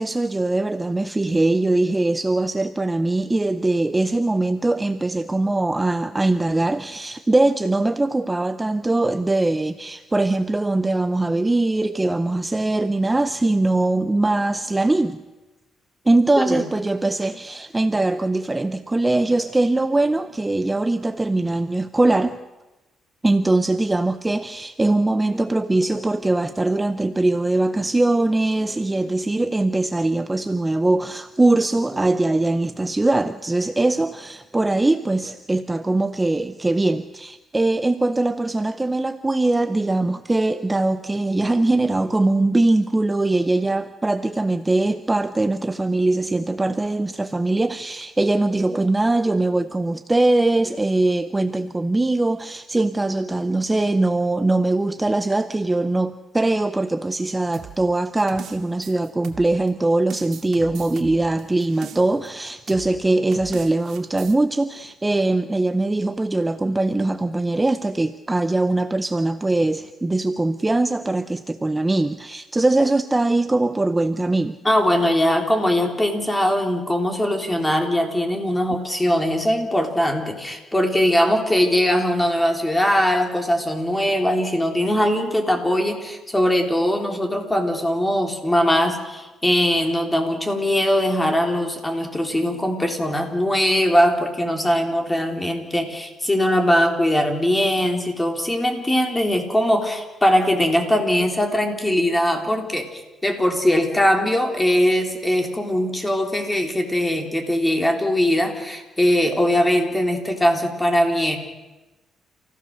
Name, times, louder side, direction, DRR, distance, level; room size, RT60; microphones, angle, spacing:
voice 1, 0.0-15.2 16.1-22.4 23.2-74.6, right 2 dB, 15° right, 11 dB, 0.7 m, -21 dB
sound 1, 57.5-59.7 60.1-62.3 62.7-62.9 63.3-64.4, right 8 dB, 70° right, 2.2 m, -40 dB
voice 2, 74.6-111.4, equal, 15° left, 4 dB, 3.6 m, -21 dB
29.5 x 16.0 x 6.6 m, 1.1 s
cardioid pair, 90°, 0 cm